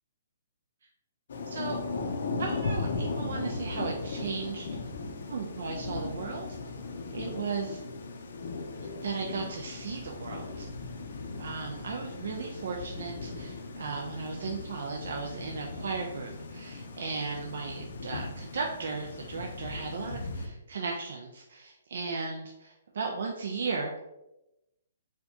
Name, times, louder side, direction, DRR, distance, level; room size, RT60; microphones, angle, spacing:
Thunder / Rain, 1.3-20.5, left 3 dB, 65° left, 0.5 m, -37 dB
voice 1, 1.5-1.8 2.4-4.7 5.3-6.5 7.1-7.8 9.0-10.7 11.4-24.0, right 4 dB, 65° right, 1 dB, 0.4 m, -36 dB
4.3 x 2.3 x 2.7 m, 0.93 s
hypercardioid pair, 150°, 0 cm